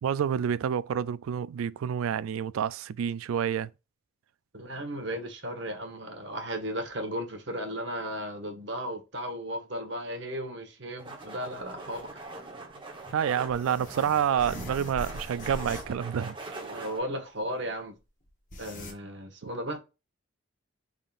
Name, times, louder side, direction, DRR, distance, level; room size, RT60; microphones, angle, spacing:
voice 1, 0.0-3.7 13.1-16.4, right 8 dB, 80° right, 0.3 m, -28 dB
voice 2, 4.5-12.1 16.6-17.9 18.6-19.8, equal, 55° right, 1.1 m, -35 dB
sound 1, 11.0-17.0, right 2 dB, 25° right, 0.9 m, -42 dB
sound 2, 11.6-11.7 11.9-12.0 13.5-16.0 16.3-16.4 17.7-17.8 18.3-18.9, left 1 dB, 40° left, 1.0 m, -41 dB
5.3 x 3.7 x 2.4 m
head